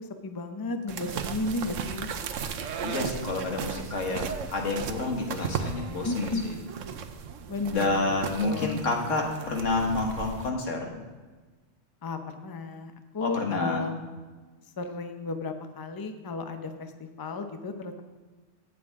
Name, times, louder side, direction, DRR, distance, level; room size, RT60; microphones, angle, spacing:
voice 1, 0.0-2.1 6.0-6.4 7.5-8.2 8.4-8.8 12.0-14.1 14.8-18.0, left 3 dB, 25° left, 7 dB, 0.6 m, -34 dB
sound 1, 0.9-10.5, right 7 dB, 90° right, 1.1 m, -36 dB
voice 2, 2.8-4.3 4.5-6.6 7.7-10.9 13.2-13.8, left 3 dB, 85° left, 1 dB, 1.9 m, -29 dB
17.0 x 7.2 x 3.6 m, 1.3 s
omnidirectional pair, 1.3 m